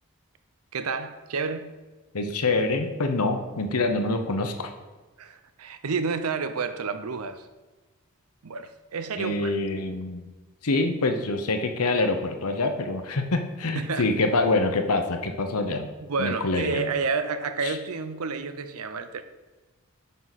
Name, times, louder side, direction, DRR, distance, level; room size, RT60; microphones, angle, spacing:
voice 1, 0.7-1.7 5.2-7.5 8.4-9.5 13.7-14.1 16.0-19.2, right 4 dB, 85° right, 0.6 m, -30 dB
voice 2, 2.1-4.7 9.2-10.3 10.6-15.9 16.2-16.9 17.6-17.8, left 2 dB, 85° left, 0.9 m, -25 dB
9.3 x 5.9 x 4.1 m
head